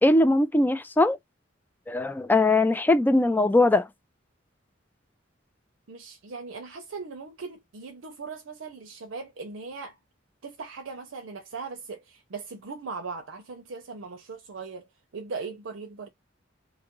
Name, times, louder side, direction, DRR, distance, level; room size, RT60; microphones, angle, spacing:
voice 1, 0.0-1.2 1.9-3.9, left 2 dB, 10° left, 0.3 m, -21 dB
voice 2, 5.9-10.0 10.4-14.9 15.1-16.1, right 4 dB, 80° right, 0.6 m, -39 dB
2.7 x 2.4 x 2.9 m
head